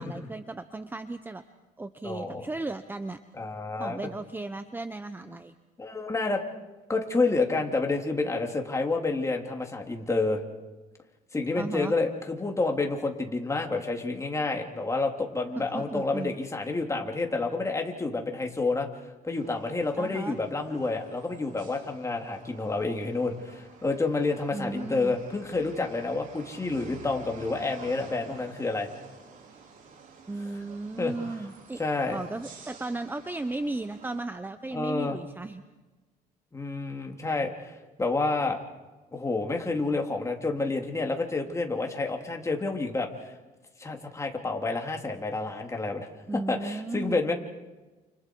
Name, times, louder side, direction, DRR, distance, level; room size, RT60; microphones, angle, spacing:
voice 1, 0.0-1.4 1.8-3.2 3.8-5.5 11.6-11.9 15.6-16.3 20.0-20.4 24.5-25.2 30.3-31.8 32.1-35.6 46.3-47.3, right 2 dB, 10° right, 10 dB, 0.9 m, -35 dB
voice 2, 2.0-2.5 3.3-4.0 5.8-6.4 6.9-10.4 11.3-18.9 19.2-28.9 31.0-31.1 31.8-32.2 34.7-35.2 36.5-38.6 39.1-43.3 43.8-47.3, left 3 dB, 15° left, 2 dB, 3.1 m, -29 dB
sound 1, 19.4-34.2, right 5 dB, 50° right, 5.2 m, -50 dB
29.5 x 29.0 x 4.7 m, 1.2 s
cardioid pair, 110°, 17 cm